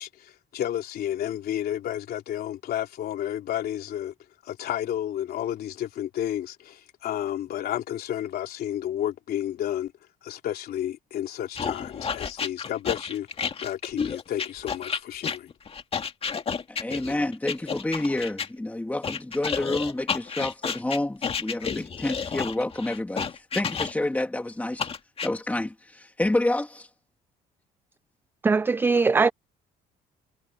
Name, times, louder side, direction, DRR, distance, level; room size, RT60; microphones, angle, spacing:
voice 1, 0.0-4.1 4.4-9.9 10.2-13.3 13.6-15.5, left 11 dB, 65° left, 3.2 m, -31 dB
sound 1, 11.6-18.5 19.0-24.2 24.8-25.3, left 6 dB, 35° left, 2.2 m, -31 dB
voice 2, 16.7-24.9 25.2-26.9, left 1 dB, 10° left, 2.4 m, -29 dB
voice 3, 28.4-29.3, right 4 dB, 10° right, 0.3 m, -20 dB
cardioid pair, 110°, 17 cm